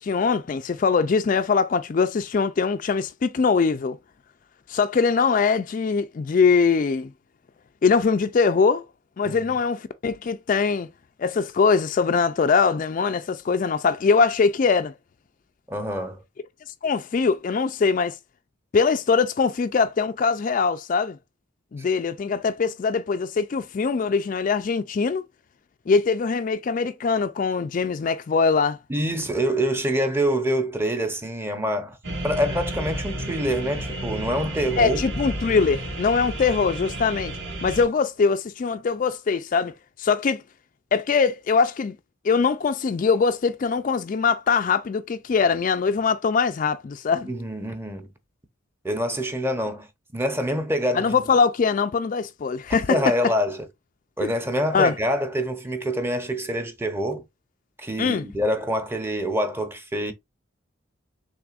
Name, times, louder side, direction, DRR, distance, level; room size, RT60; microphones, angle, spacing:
voice 1, 0.0-4.0 4.7-7.1 7.8-8.9 9.2-10.9 11.2-14.9 16.8-18.2 18.7-21.2 21.7-25.2 25.9-28.8 34.8-40.4 40.9-42.0 42.2-47.3 50.9-53.0 54.2-54.3 54.7-54.9 58.0-58.3, left 5 dB, 40° left, 0.3 m, -22 dB
voice 2, 9.2-9.6 15.7-16.2 28.9-32.0 32.2-35.0 47.2-48.1 48.8-51.2 52.9-53.7 54.2-57.2 57.8-60.1, equal, 10° right, 0.7 m, -26 dB
sound 1, 32.0-37.8, right 1 dB, 60° right, 2.0 m, -32 dB
6.0 x 3.4 x 2.4 m
head